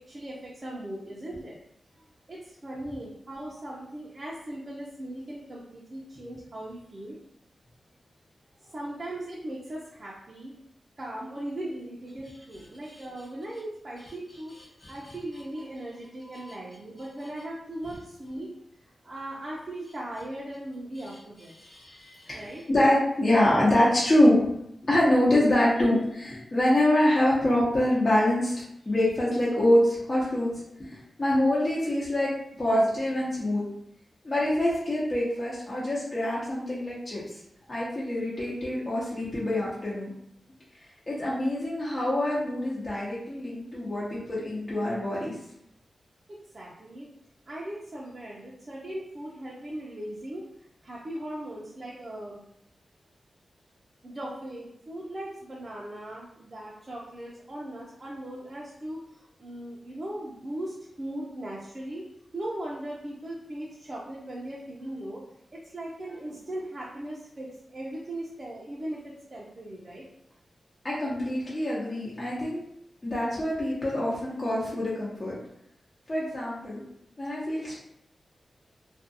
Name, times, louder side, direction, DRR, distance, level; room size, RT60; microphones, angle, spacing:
voice 1, 0.1-1.6 2.3-7.2 8.7-10.5 11.0-14.5 14.9-18.5 19.0-21.5 22.3-22.6 27.8-27.9 46.3-47.1 47.5-50.4 50.8-52.4 54.0-62.1 62.3-65.2 65.5-70.1, right 1 dB, 45° right, -6 dB, 0.6 m, -38 dB
voice 2, 21.6-24.4 24.8-28.5 28.9-32.3 32.6-33.6 34.2-37.2 37.7-40.1 41.1-45.3 70.8-72.6 73.0-75.4 76.1-76.8 77.2-77.8, left 1 dB, 40° left, -8 dB, 0.9 m, -25 dB
2.5 x 2.4 x 2.7 m, 0.75 s
cardioid pair, 60°, 0 cm